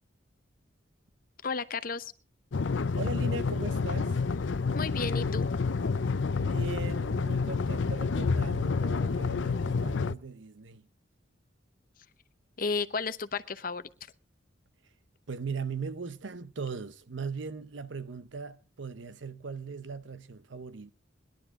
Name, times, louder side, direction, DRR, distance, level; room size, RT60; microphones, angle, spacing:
voice 1, 1.4-2.1 4.7-5.5 12.6-13.9, left 4 dB, 45° left, 0.8 m, -33 dB
sound 1, 2.5-10.1, left 4 dB, 80° left, 0.6 m, -29 dB
voice 2, 3.0-4.2 6.3-10.8 15.3-20.9, right 4 dB, 80° right, 0.8 m, -39 dB
20.5 x 11.5 x 3.7 m
head